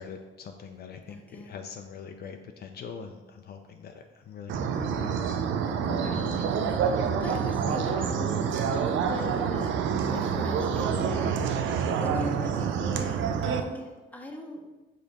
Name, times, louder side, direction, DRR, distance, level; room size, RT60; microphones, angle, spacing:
voice 1, 0.0-5.4 7.6-7.9, left 6 dB, 55° left, 5 dB, 0.4 m, -43 dB
voice 2, 1.1-1.5 4.8-5.2 5.6-9.8 10.1-11.4 12.0-14.6, left 1 dB, 10° left, 1 dB, 0.7 m, -40 dB
sound 1, 4.5-13.6, right 6 dB, 75° right, 0.4 m, -27 dB
5.2 x 2.4 x 4.0 m, 1.2 s
cardioid pair, 90°, 20 cm